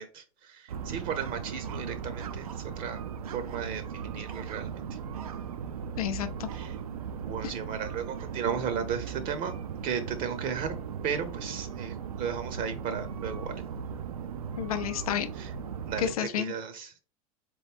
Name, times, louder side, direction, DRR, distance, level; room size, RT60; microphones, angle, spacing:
voice 1, 0.0-3.0 3.3-4.9 6.5-6.8 7.2-9.5 9.8-10.8 11.0-13.6 15.4-15.5 15.9-16.1 16.4-17.0, right 7 dB, 50° right, 10 dB, 0.6 m, -35 dB
sound 1, 0.7-16.2, right 7 dB, 90° right, 0.4 m, -38 dB
voice 2, 6.0-6.5 14.6-15.3 16.0-16.5, left 10 dB, 85° left, 9 dB, 0.5 m, -30 dB
3.9 x 3.0 x 3.4 m, 0.37 s
hypercardioid pair, 95°, 18 cm